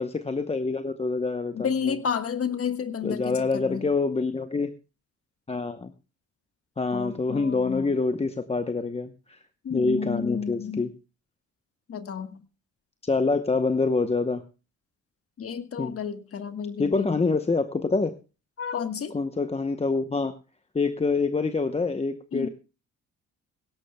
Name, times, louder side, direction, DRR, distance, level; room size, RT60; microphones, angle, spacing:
voice 1, 0.0-2.0 3.0-4.7 5.5-5.9 6.8-9.4 9.7-10.9 13.0-14.4 15.8-15.9 16.8-18.1 19.1-20.3 20.7-22.5, left 3 dB, 20° left, 8 dB, 0.8 m, -26 dB
voice 2, 1.5-3.9 6.9-7.9 9.6-10.9 11.9-12.4 15.4-17.2 18.6-19.2 22.3-22.5, left 7 dB, 50° left, 10 dB, 1.3 m, -31 dB
17.0 x 17.0 x 2.2 m, 0.32 s
cardioid pair, 90°, 30 cm